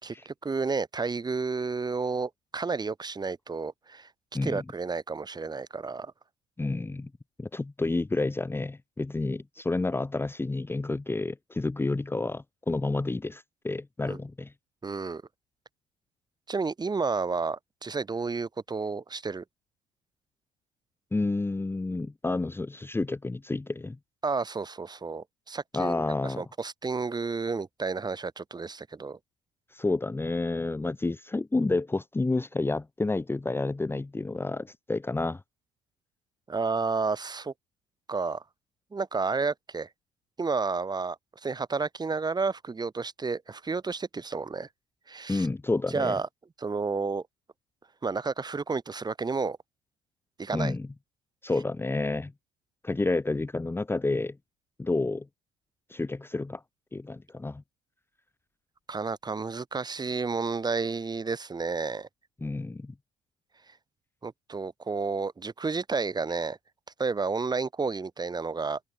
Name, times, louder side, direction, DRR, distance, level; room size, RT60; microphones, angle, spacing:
voice 1, 0.0-4.1 4.4-6.1 14.1-14.2 14.8-15.2 16.5-19.4 24.2-29.2 36.5-37.5 38.1-38.4 38.9-39.9 40.4-44.7 45.1-45.5 45.9-46.3 46.6-47.2 48.0-49.6 50.4-50.7 58.9-62.1 64.2-66.6 67.0-68.8, right 4 dB, 20° right, 2.0 m, -31 dB
voice 2, 6.6-7.1 7.4-14.5 21.1-24.0 25.7-26.4 29.7-35.4 45.3-46.2 50.5-50.9 51.4-52.3 52.8-54.4 54.8-55.3 55.9-56.6 56.9-57.6 62.4-62.9, left 3 dB, 10° left, 1.1 m, -30 dB
open air
hypercardioid pair, 70°, 19 cm